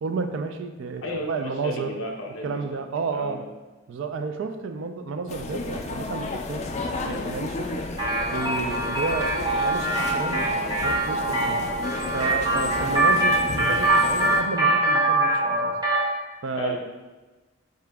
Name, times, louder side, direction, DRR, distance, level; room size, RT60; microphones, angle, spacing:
voice 1, 0.0-2.0 2.4-3.4 3.9-6.7 7.0-7.9 8.3-11.7 12.1-15.7 16.4-16.8, right 4 dB, 70° right, 7 dB, 0.4 m, -31 dB
voice 2, 1.0-2.8 3.1-3.5 16.5-16.8, left 1 dB, 90° left, 0 dB, 0.6 m, -33 dB
sound 1, 5.3-14.4, left 3 dB, 35° left, 0.3 m, -32 dB
sound 2, 8.0-16.1, right 2 dB, 20° right, 0.8 m, -23 dB
4.8 x 2.8 x 3.4 m, 1.2 s
head